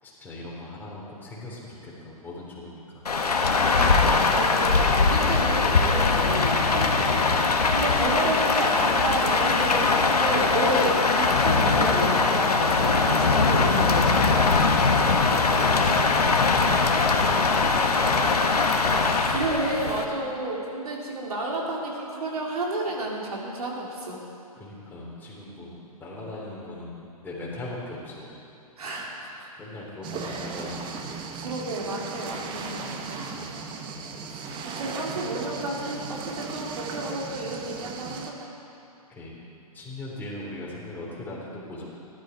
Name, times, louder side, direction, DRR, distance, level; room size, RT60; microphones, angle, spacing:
voice 1, 0.0-3.0 14.8-18.6 24.6-28.3 29.6-31.4 33.3-33.5 39.1-39.4 39.7-41.8, left 2 dB, 10° left, -6 dB, 3.6 m, -39 dB
Rain, 3.1-20.1, left 4 dB, 85° left, 1.3 m, -21 dB
voice 2, 3.7-14.6 19.3-24.2 28.8-29.5 30.2-30.4 31.4-33.4 34.6-38.5, right 1 dB, 75° right, -3 dB, 3.4 m, -31 dB
sound 1, 30.0-38.3, right 5 dB, 25° right, 1.1 m, -36 dB
16.5 x 12.5 x 4.6 m, 2.7 s
hypercardioid pair, 125°, 19 cm